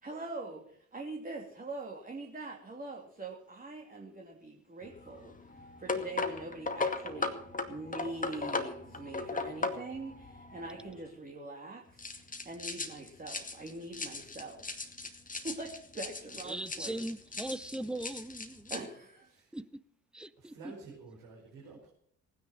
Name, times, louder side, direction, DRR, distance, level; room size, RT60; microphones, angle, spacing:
voice 1, 0.0-5.3 5.8-7.4 7.7-14.6 15.4-17.0 18.7-19.3, right 2 dB, 20° right, 0 dB, 3.0 m, -43 dB
sound 1, 4.8-11.0 12.0-18.8, left 3 dB, 20° left, 2.3 m, -38 dB
voice 2, 16.4-18.7 19.5-19.8 20.1-20.7, right 1 dB, ahead, 17 dB, 0.7 m, -39 dB
voice 3, 20.4-21.9, right 4 dB, 60° right, -3 dB, 5.0 m, -51 dB
18.5 x 10.0 x 6.5 m, 0.65 s
figure-of-eight pair, 55°, 42 cm